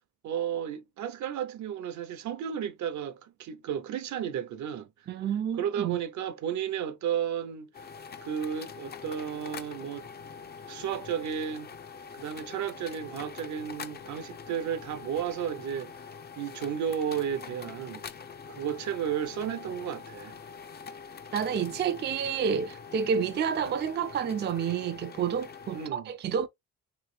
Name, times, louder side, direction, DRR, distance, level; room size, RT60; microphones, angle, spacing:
voice 1, 0.2-4.9 5.6-7.7 8.2-10.1 10.7-11.7 12.1-15.9 16.4-18.0 18.5-20.3 25.7-26.1, right 8 dB, 70° right, 0.7 m, -33 dB
voice 2, 5.1-6.0 21.3-26.5, right 7 dB, 35° right, 0.4 m, -29 dB
sound 1, 7.7-25.9, left 6 dB, 35° left, 0.5 m, -44 dB
3.1 x 3.0 x 3.2 m
cardioid pair, 90°, 30 cm